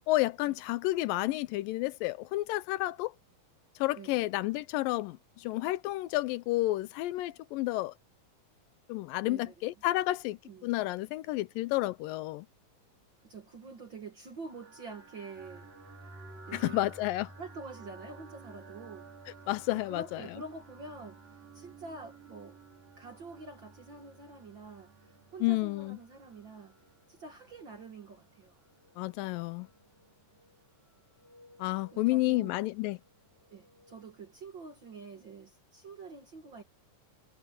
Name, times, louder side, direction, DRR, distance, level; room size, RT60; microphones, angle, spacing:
voice 1, 0.1-3.1 3.8-7.9 8.9-12.5 16.6-17.3 19.5-20.2 25.4-26.0 29.0-29.7 31.6-33.0, left 18 dB, 85° left, 2.2 m, -31 dB
voice 2, 9.2-9.7 10.4-10.9 13.2-15.7 16.5-16.8 17.4-19.1 19.7-22.6 22.9-26.8 27.1-28.6 31.9-32.6 33.5-36.6, right 3 dB, 50° right, 1.6 m, -47 dB
sound 1, 14.5-34.2, right 3 dB, 70° right, 7.0 m, -54 dB
omnidirectional pair, 4.1 m